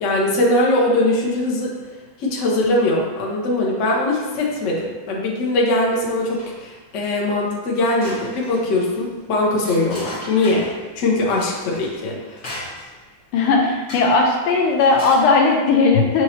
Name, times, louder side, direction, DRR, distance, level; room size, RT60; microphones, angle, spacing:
voice 1, 0.0-1.7 2.2-10.7 10.9-12.4 15.9-16.0, left 2 dB, 65° left, -3 dB, 0.7 m, -21 dB
sound 1, 6.2-6.8 7.2-7.3 7.7-10.8 11.3-13.1 13.9-14.3 14.7-15.3, left 1 dB, 50° left, 1.7 m, -37 dB
voice 2, 13.3-16.2, left 3 dB, 85° left, 1 dB, 1.5 m, -17 dB
6.2 x 2.9 x 2.9 m, 1.3 s
omnidirectional pair, 2.4 m